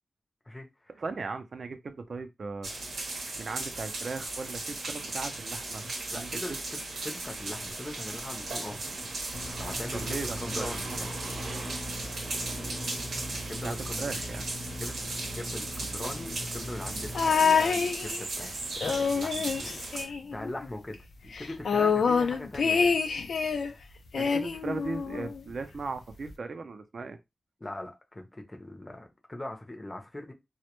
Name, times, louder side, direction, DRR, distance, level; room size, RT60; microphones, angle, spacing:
voice 1, 0.5-0.9 6.1-9.0 9.6-10.9 13.3-14.1 14.8-18.5 18.8-23.0 27.6-30.3, left 1 dB, 20° left, 0.5 m, -41 dB
voice 2, 1.0-2.7 3.4-5.8 6.1-6.3 9.9-10.7 11.0-11.1 13.6-14.5 24.1-27.2, right 4 dB, 55° right, 0.4 m, -37 dB
sound 1, 2.6-20.1, right 2 dB, 90° right, 0.7 m, -36 dB
sound 2, 9.3-17.3, equal, 65° left, 0.8 m, -40 dB
sound 3, 17.1-18.4 18.8-20.7 20.9-21.0 21.3-23.7 24.1-25.4 26.3-26.4, left 5 dB, 85° left, 0.3 m, -27 dB
2.1 x 2.1 x 2.9 m
wide cardioid pair, 135°, 0 cm